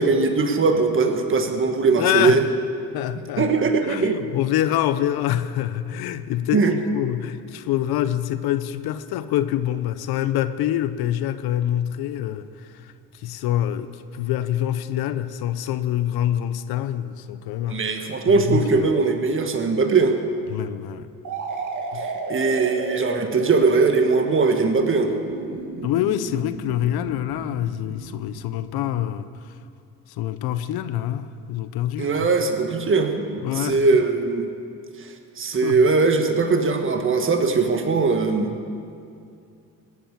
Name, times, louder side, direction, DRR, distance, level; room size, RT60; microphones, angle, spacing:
voice 1, 0.0-2.4 3.4-4.2 6.5-6.7 17.7-20.2 21.9-25.1 32.0-34.5 35.0-38.5, right 4 dB, 35° right, 5 dB, 1.5 m, -20 dB
voice 2, 2.0-2.4 2.9-3.5 3.8-17.8 18.3-18.9 20.5-21.1 21.9-22.0 25.8-29.5 30.2-32.3 33.4-33.9 35.6-35.8, left 12 dB, 75° left, 12 dB, 0.8 m, -26 dB
sound 1, 21.2-28.9, right 3 dB, 55° right, 2.3 m, -32 dB
18.5 x 8.7 x 8.7 m, 2.4 s
cardioid pair, 85°, 37 cm